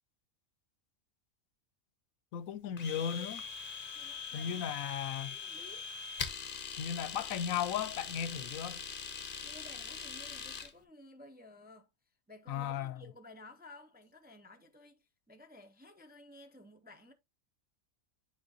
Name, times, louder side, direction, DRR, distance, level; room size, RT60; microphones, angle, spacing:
voice 1, 2.3-3.4 4.3-5.4 6.8-8.8 12.5-13.0, left 8 dB, 80° left, 1.0 m, -36 dB
Domestic sounds home sounds, 2.8-10.7, left 6 dB, 45° left, 0.9 m, -42 dB
voice 2, 3.9-4.9 5.3-5.9 9.4-11.9 12.3-17.1, left 2 dB, 10° right, 0.5 m, -55 dB
10.5 x 3.7 x 2.8 m
omnidirectional pair, 1.4 m